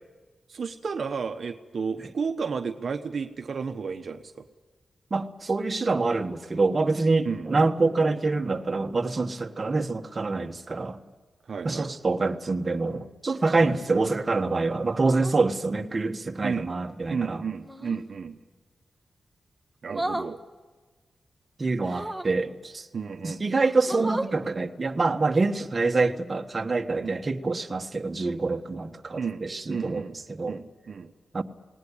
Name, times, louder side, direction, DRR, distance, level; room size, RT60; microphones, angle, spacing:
voice 1, 0.5-4.3 7.2-7.5 11.5-11.9 13.6-13.8 16.4-16.7 17.1-18.4 19.8-20.4 21.8-22.1 22.9-23.4 27.0-27.2 29.2-30.2 30.5-31.1, right 5 dB, 60° right, 7 dB, 1.0 m, -32 dB
voice 2, 5.1-11.0 11.6-17.4 21.6-22.9 23.2-30.6 31.3-31.4, right 3 dB, 35° right, 5 dB, 1.4 m, -26 dB
sound 1, 13.3-13.8 15.0-15.4 17.6-18.1 19.9-20.3 21.8-22.4 23.1-23.2 23.6-24.3 26.0-26.2, right 1 dB, 5° right, 1.5 m, -35 dB
19.5 x 18.5 x 10.0 m, 1.3 s
cardioid pair, 75°, 0 cm